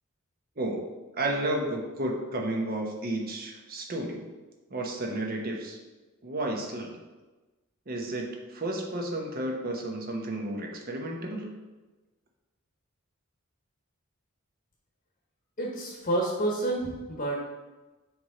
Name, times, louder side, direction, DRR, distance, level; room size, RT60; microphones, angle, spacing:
voice 1, 1.2-4.3 4.7-5.8 6.2-7.0 7.9-11.6, right 1 dB, 45° right, 1 dB, 1.0 m, -32 dB
voice 2, 15.6-17.5, right 1 dB, 40° left, -2 dB, 1.0 m, -29 dB
6.9 x 3.2 x 4.9 m, 1.2 s
head